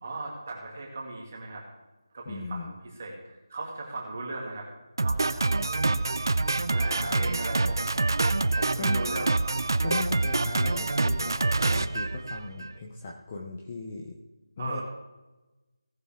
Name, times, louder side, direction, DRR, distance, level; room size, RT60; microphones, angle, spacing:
voice 1, 0.0-1.6 2.1-4.7 5.0-6.0 6.7-7.9 8.6-9.6 14.6-14.8, right 2 dB, 25° right, -1 dB, 2.2 m, -37 dB
voice 2, 2.3-2.7 7.0-7.3 8.8-9.0 9.8-11.4 11.6-14.2 14.6-14.8, left 3 dB, 15° left, 0 dB, 0.5 m, -37 dB
Drum kit, 5.0-12.8, right 2 dB, 50° right, 0.5 m, -26 dB
18.0 x 6.8 x 3.5 m, 1.1 s
figure-of-eight pair, 180°, 3 cm